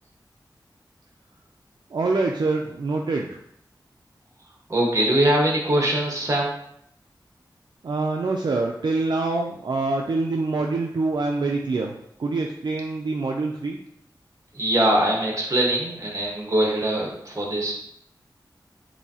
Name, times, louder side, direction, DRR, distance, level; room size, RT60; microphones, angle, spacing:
voice 1, 1.9-3.3 7.8-11.9 12.2-13.8, right 3 dB, 70° right, 1 dB, 0.4 m, -25 dB
voice 2, 4.7-6.5 14.5-17.7, right 1 dB, 40° right, -1 dB, 1.4 m, -22 dB
6.9 x 2.7 x 2.8 m, 0.73 s
wide cardioid pair, 55°, 8 cm